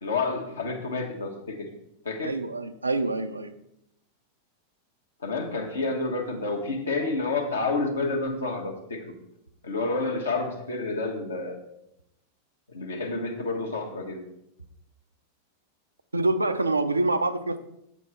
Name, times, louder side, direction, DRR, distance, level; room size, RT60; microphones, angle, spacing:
voice 1, 0.0-1.7 2.0-2.4 5.2-9.1 9.6-11.6 12.7-14.2, left 3 dB, 70° left, 2 dB, 1.4 m, -29 dB
voice 2, 2.2-3.5 16.1-17.6, right 2 dB, 80° right, 9 dB, 0.5 m, -26 dB
7.8 x 7.0 x 4.2 m, 0.80 s
figure-of-eight pair, 90°, 0 cm